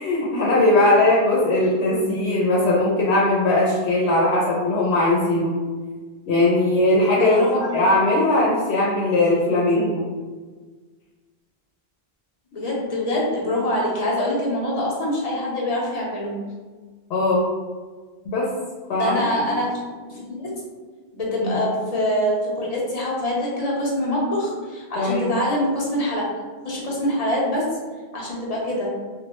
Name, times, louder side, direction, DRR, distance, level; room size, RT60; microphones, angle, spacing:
voice 1, 0.0-5.6 6.3-10.0 17.1-17.4 18.3-18.5 18.9-19.5 21.4-21.5 25.0-25.3, left 2 dB, 85° left, -5 dB, 0.9 m, -19 dB
voice 2, 7.2-7.7 12.5-16.5 18.9-20.6 21.1-26.2 26.6-27.7 28.1-28.9, left 1 dB, 40° left, -4 dB, 0.8 m, -25 dB
3.0 x 2.2 x 2.9 m, 1.4 s
omnidirectional pair, 1.1 m